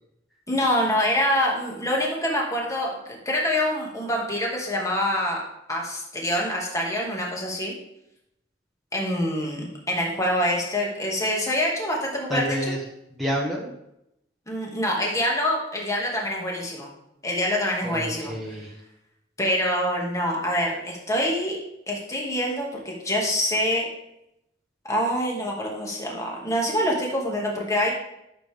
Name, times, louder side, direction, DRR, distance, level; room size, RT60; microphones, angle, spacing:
voice 1, 0.5-5.4 5.7-7.8 8.9-12.7 14.5-16.9 17.2-18.3 19.4-21.6 21.9-23.9 24.8-27.9, equal, 15° left, -2 dB, 2.1 m, -25 dB
voice 2, 12.3-12.8 13.1-13.7 17.8-18.7, equal, ahead, -4 dB, 1.2 m, -29 dB
13.0 x 6.9 x 3.6 m, 0.83 s
head